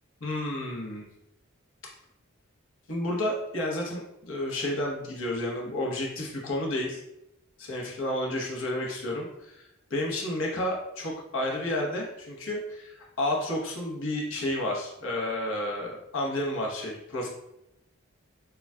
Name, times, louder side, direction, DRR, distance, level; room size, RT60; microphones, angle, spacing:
voice 1, 0.2-1.0 2.9-7.0 7.6-9.6 9.9-17.3, left 1 dB, 70° left, -2 dB, 1.0 m, -31 dB
6.7 x 2.4 x 2.3 m, 0.85 s
head